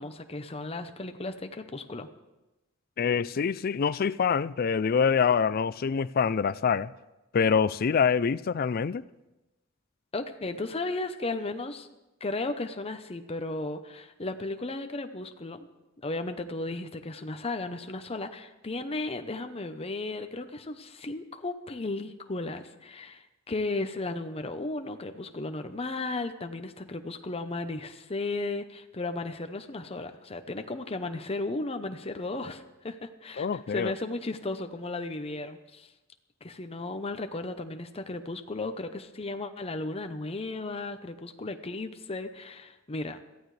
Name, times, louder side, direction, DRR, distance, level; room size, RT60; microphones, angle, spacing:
voice 1, 0.0-2.1 10.1-11.9 12.2-15.6 16.0-35.9 36.4-43.2, left 2 dB, 30° left, 0.8 m, -35 dB
voice 2, 3.0-6.9 7.3-9.0 33.4-33.9, left 6 dB, 50° left, 0.4 m, -25 dB
22.0 x 14.5 x 3.3 m
head